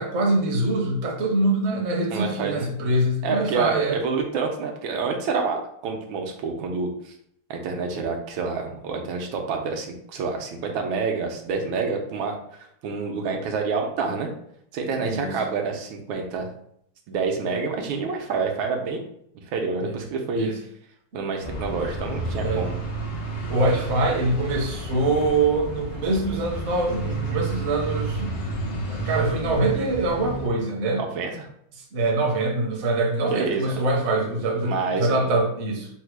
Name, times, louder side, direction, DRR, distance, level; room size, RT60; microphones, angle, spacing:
voice 1, 0.0-4.0 15.0-15.4 19.8-20.0 20.4-20.6 22.4-22.6 23.5-28.4 28.6-31.0 31.9-35.9, right 2 dB, 50° right, 1 dB, 0.9 m, -24 dB
voice 2, 2.1-2.7 3.2-7.1 7.5-14.3 14.7-16.5 17.1-19.0 19.5-20.5 21.1-22.8 31.0-31.5 33.3-33.8 34.6-35.3, right 4 dB, 85° right, 2 dB, 1.5 m, -28 dB
sound 1, 21.4-30.5, right 2 dB, 40° left, 0.7 m, -31 dB
4.1 x 2.1 x 4.6 m, 0.70 s
omnidirectional pair, 2.1 m